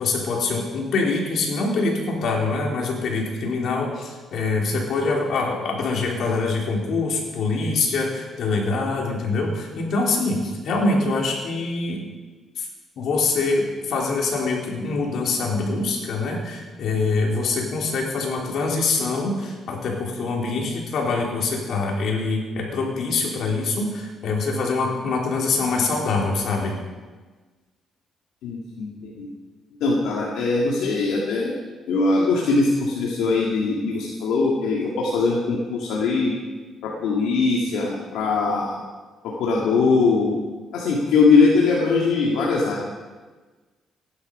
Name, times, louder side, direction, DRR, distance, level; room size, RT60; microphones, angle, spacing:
voice 1, 0.0-12.0 12.6-12.7 13.0-26.8, left 3 dB, 70° left, -1 dB, 3.8 m, -24 dB
voice 2, 28.4-29.3 29.8-31.5 31.9-36.3 36.8-38.8 39.2-40.3 40.7-42.8, left 4 dB, 85° left, -3 dB, 2.1 m, -21 dB
15.5 x 11.0 x 5.5 m, 1.3 s
cardioid pair, 90°, 0 cm